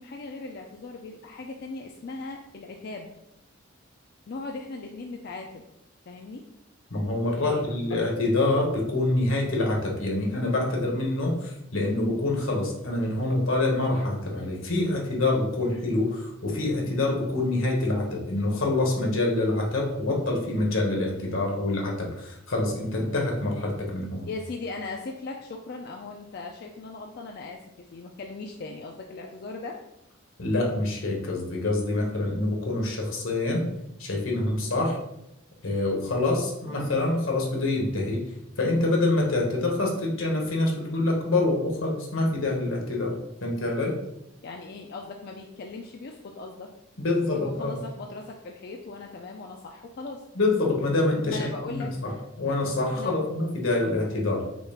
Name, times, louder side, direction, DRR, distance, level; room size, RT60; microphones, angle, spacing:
voice 1, 0.0-3.1 4.3-5.7 6.1-6.4 7.4-7.6 24.3-29.8 44.4-46.7 47.2-50.2 51.2-51.9 52.9-53.1, left 3 dB, 50° left, 1 dB, 0.4 m, -38 dB
voice 2, 6.9-24.3 30.4-33.7 34.0-35.0 35.6-38.3 38.6-44.0 47.0-47.8 50.3-52.1 52.4-54.4, left 2 dB, 85° left, 0 dB, 1.3 m, -26 dB
5.9 x 2.4 x 3.4 m, 0.84 s
head